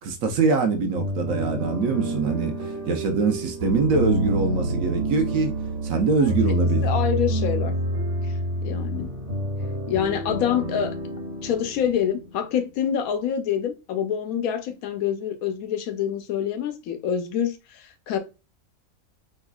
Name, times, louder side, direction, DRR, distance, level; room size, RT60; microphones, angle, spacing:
voice 1, 0.0-6.9, right 4 dB, 75° right, 1.0 m, -24 dB
sound 1, 0.9-12.6, right 1 dB, 60° right, 1.5 m, -28 dB
voice 2, 6.8-7.7 8.2-8.3 8.6-9.1 9.9-10.9 11.4-18.2, left 8 dB, 85° left, 1.1 m, -26 dB
3.7 x 3.1 x 2.2 m
omnidirectional pair, 1.4 m